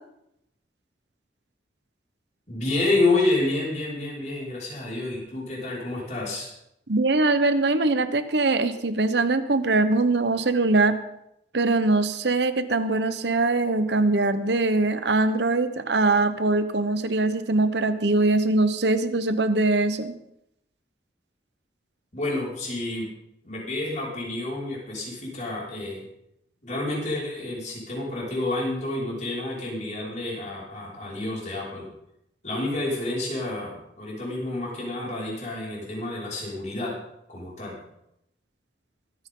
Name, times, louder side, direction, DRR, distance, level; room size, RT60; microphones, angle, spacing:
voice 1, 2.5-6.5 22.1-23.1 23.4-26.0 26.6-31.9 32.4-36.9 37.3-37.8, left 2 dB, 40° left, -5 dB, 5.4 m, -29 dB
voice 2, 6.9-10.9 11.5-20.1, right 2 dB, 75° right, 11 dB, 1.0 m, -22 dB
23.0 x 9.7 x 3.8 m, 0.80 s
head